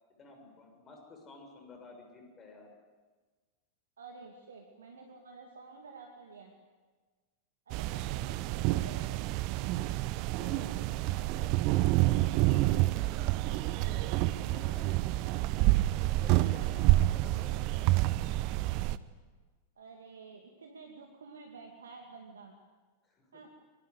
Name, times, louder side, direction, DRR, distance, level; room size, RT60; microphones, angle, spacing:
voice 1, 0.2-2.7 7.9-8.1 8.5-8.6 10.4-13.3 13.8-15.0 16.0-18.2 23.0-23.5, left 3 dB, 25° left, 3 dB, 6.7 m, -53 dB
voice 2, 4.0-6.5 7.7-9.2 19.8-22.5 23.3-23.5, right 4 dB, 70° right, 2 dB, 2.4 m, -50 dB
sound 1, 7.7-19.0, right 17 dB, 45° right, 0.8 m, -28 dB
24.0 x 23.5 x 8.2 m, 1.4 s
figure-of-eight pair, 90°, 0 cm